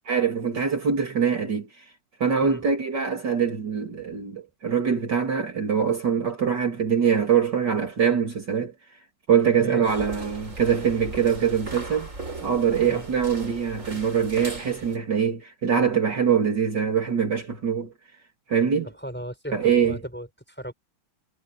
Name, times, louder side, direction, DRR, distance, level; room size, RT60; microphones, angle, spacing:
voice 1, 0.1-1.7 2.2-8.7 9.3-12.1 12.4-17.9 18.5-18.9 19.5-20.0, right 7 dB, 55° right, 3.4 m, -23 dB
voice 2, 9.6-10.1 12.8-13.1 18.8-20.7, equal, 5° left, 5.8 m, -36 dB
sound 1, 9.9-15.0, right 2 dB, 35° right, 6.0 m, -38 dB
omnidirectional pair, 2.3 m